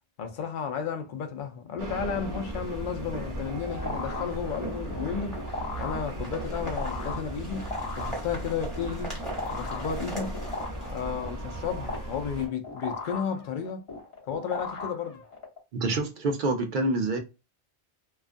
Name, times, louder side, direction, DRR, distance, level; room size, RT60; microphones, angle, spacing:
voice 1, 0.2-5.4 5.8-9.2 9.5-10.4 10.9-13.9 14.3-15.2, left 7 dB, 60° left, 0.6 m, -33 dB
sound 1, 1.8-12.5, right 1 dB, 20° right, 0.9 m, -37 dB
sound 2, 3.2-15.6, left 3 dB, 30° left, 0.9 m, -38 dB
sound 3, 4.0-12.0, right 1 dB, ahead, 1.2 m, -42 dB
voice 2, 15.7-17.2, right 2 dB, 55° right, 0.6 m, -27 dB
2.3 x 2.3 x 2.5 m
omnidirectional pair, 1.2 m